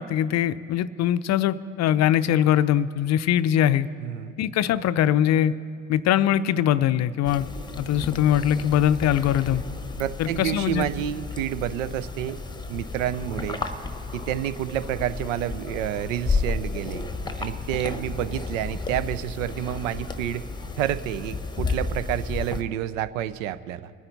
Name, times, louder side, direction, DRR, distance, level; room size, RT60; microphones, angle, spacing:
voice 1, 0.0-3.9 4.4-5.5 5.9-7.5 7.8-9.6 10.2-10.9, left 10 dB, 45° left, 15 dB, 0.5 m, -22 dB
voice 2, 4.0-4.3 10.0-12.4 12.7-13.6 14.1-17.1 17.4-20.5 20.8-23.9, right 12 dB, 80° right, 15 dB, 0.6 m, -29 dB
sound 1, 7.2-22.6, left 3 dB, 10° left, 0.9 m, -32 dB
25.0 x 9.7 x 4.0 m, 2.4 s
hypercardioid pair, 60°, 38 cm